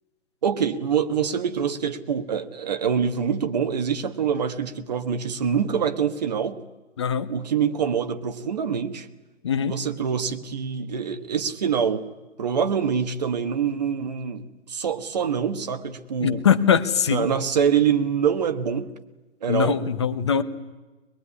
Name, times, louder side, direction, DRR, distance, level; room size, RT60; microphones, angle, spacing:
voice 1, 0.4-6.6 7.3-9.1 9.6-12.0 12.4-16.4 17.1-18.9 19.4-19.8, right 7 dB, 35° right, 8 dB, 1.5 m, -25 dB
voice 2, 7.0-7.3 9.4-9.8 16.2-17.3 19.5-20.4, left 7 dB, 25° left, 10 dB, 0.9 m, -22 dB
22.0 x 22.0 x 9.8 m, 1.1 s
hypercardioid pair, 170°, 36 cm